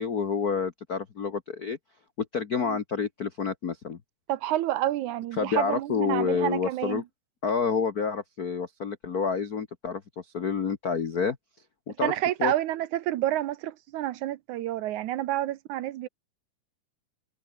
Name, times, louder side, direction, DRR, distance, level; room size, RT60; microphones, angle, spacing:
voice 1, 0.0-1.8 2.2-4.0 5.4-7.0 7.4-11.4 11.9-12.1 12.4-12.5, left 5 dB, 70° left, 0.8 m, -28 dB
voice 2, 4.3-7.0 12.0-16.1, right 14 dB, 75° right, 2.1 m, -29 dB
omnidirectional pair, 3.8 m